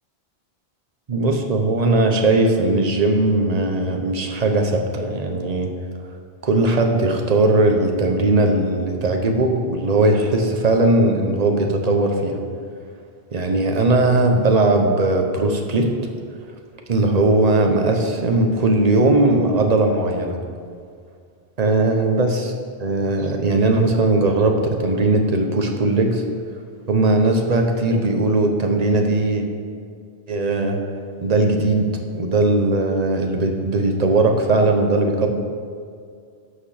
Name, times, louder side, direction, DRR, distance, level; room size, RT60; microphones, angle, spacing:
voice 1, 1.1-5.7 6.4-12.4 13.3-15.9 16.9-20.4 21.6-22.5 22.8-26.2 26.9-29.4 30.3-30.8 31.2-31.9 32.1-35.3, right 2 dB, 40° right, 3 dB, 1.0 m, -19 dB
11.5 x 6.7 x 5.0 m, 2.2 s
omnidirectional pair, 1.1 m